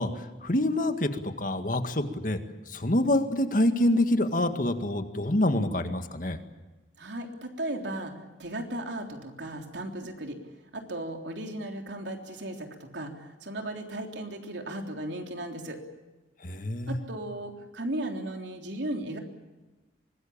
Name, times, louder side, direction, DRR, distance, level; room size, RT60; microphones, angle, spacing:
voice 1, 0.0-2.4 2.7-6.4 16.4-17.0, left 1 dB, 45° left, 7 dB, 1.9 m, -26 dB
voice 2, 7.0-8.1 8.4-10.4 10.7-15.8 16.9-19.2, right 1 dB, 75° right, 3 dB, 3.6 m, -36 dB
24.5 x 20.5 x 8.7 m, 1.2 s
head